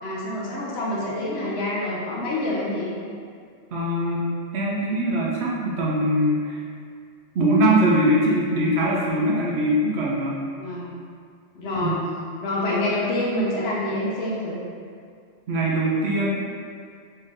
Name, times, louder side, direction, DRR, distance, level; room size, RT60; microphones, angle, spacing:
voice 1, 0.0-2.9 10.6-10.9 11.5-12.0 12.4-14.6, left 1 dB, 60° left, -5 dB, 0.9 m, -26 dB
voice 2, 3.7-4.2 4.5-6.6 7.3-10.3 11.8-11.9 15.5-16.3, right 1 dB, 65° right, -5 dB, 0.8 m, -22 dB
3.3 x 2.7 x 3.5 m, 2.2 s
omnidirectional pair, 1.3 m